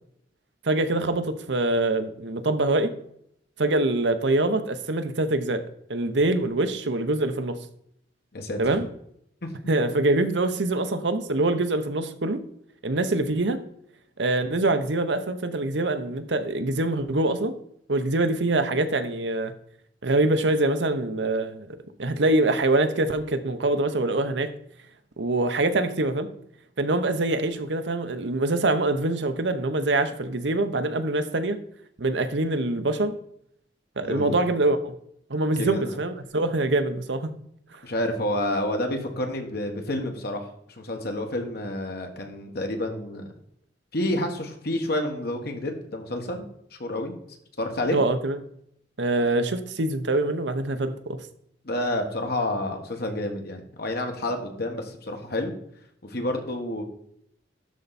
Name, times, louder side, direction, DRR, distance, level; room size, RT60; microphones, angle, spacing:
voice 1, 0.6-2.9 3.6-5.6 5.9-7.6 8.6-8.9 9.7-12.4 12.8-13.6 14.2-17.5 17.9-19.5 20.0-24.5 25.2-26.3 26.8-31.6 32.0-33.2 34.0-34.9 35.3-37.3 37.7-37.8 47.9-48.4 49.0-51.2, right 2 dB, 70° right, 9 dB, 0.9 m, -24 dB
voice 2, 34.0-34.4 35.6-36.0 37.8-40.5 40.7-43.3 43.9-46.4 46.8-47.1 47.6-48.0 51.6-55.5 56.0-56.8, left 1 dB, 60° left, 4 dB, 1.6 m, -29 dB
12.5 x 4.6 x 4.2 m, 0.71 s
head